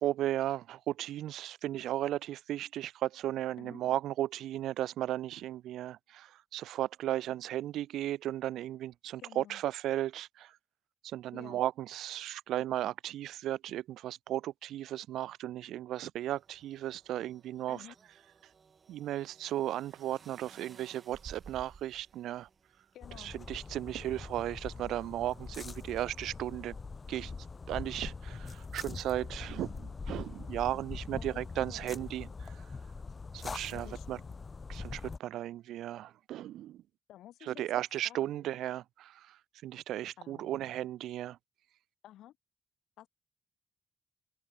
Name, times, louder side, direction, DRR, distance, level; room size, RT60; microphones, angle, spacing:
voice 1, 0.0-10.5 11.0-17.8 18.9-22.5 23.2-26.8 27.1-27.3 27.7-32.5 33.3-34.2 34.7-36.8 37.4-39.4 39.6-41.4, right 13 dB, 85° right, 1.0 m, -35 dB
voice 2, 9.2-9.6 11.3-11.6 17.7-18.0 22.9-23.3 29.6-29.7 31.2-31.9 33.7-34.4 37.1-38.5 40.2-40.6 42.0-42.4 43.0-43.1, left 13 dB, 85° left, 3.6 m, -53 dB
sound 1, 16.2-26.4, right 5 dB, 35° right, 7.5 m, -58 dB
sound 2, 23.0-35.2, left 4 dB, 30° left, 1.2 m, -43 dB
cardioid pair, 115°, 0 cm